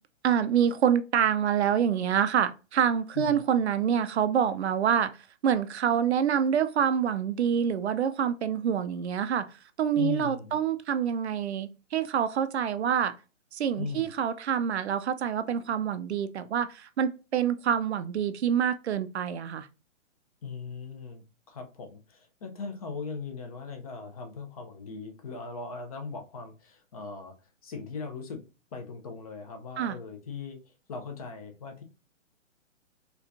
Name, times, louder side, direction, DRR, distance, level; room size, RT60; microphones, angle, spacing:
voice 1, 0.2-5.2 5.4-9.5 9.8-13.1 13.5-19.7 29.8-30.0, right 8 dB, 60° right, 0.5 m, -26 dB
voice 2, 10.0-10.6 13.8-14.1 20.4-27.3 27.6-28.4 28.7-31.8, left 4 dB, 30° left, 0.5 m, -39 dB
4.4 x 2.3 x 2.5 m
hypercardioid pair, 140°, 38 cm